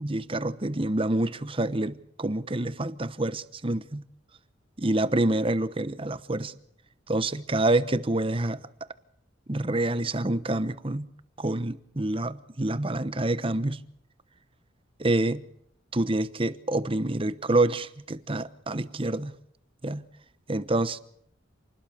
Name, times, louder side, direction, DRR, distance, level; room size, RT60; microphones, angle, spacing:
voice 1, 0.0-4.0 4.8-6.5 7.1-8.6 9.5-11.1 11.4-13.8 15.0-15.4 15.9-19.3 19.8-20.0 20.5-21.0, right 2 dB, 30° right, 1.0 m, -27 dB
27.5 x 21.0 x 6.7 m
head